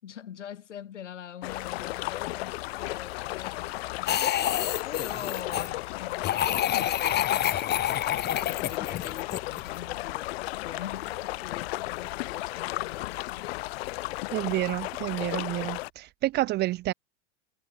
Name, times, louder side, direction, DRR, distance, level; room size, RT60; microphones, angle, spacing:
voice 1, 0.0-4.5 4.8-7.5 8.5-13.5, left 9 dB, 80° left, 6.0 m, -43 dB
sound 1, 1.4-15.9, left 20 dB, 60° left, 2.7 m, -34 dB
sound 2, 4.1-5.7 6.2-9.7, left 11 dB, 30° left, 2.2 m, -28 dB
voice 2, 14.3-16.9, right 17 dB, 30° right, 0.6 m, -29 dB
hypercardioid pair, 110°, 36 cm